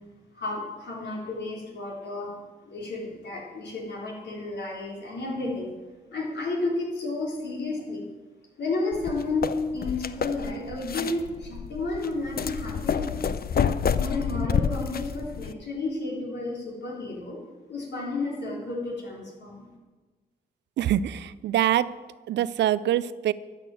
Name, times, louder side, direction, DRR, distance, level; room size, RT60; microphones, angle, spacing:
voice 1, 0.3-2.3 2.7-5.7 6.1-8.1 8.6-13.4 14.0-17.4 17.7-19.7, left 2 dB, 75° left, -3 dB, 3.7 m, -32 dB
sound 1, 8.9-15.5, left 7 dB, 60° left, 0.6 m, -29 dB
voice 2, 20.8-21.9 22.3-23.3, right 11 dB, 90° right, 17 dB, 0.4 m, -24 dB
13.0 x 6.7 x 7.6 m, 1.3 s
cardioid pair, 55°, 18 cm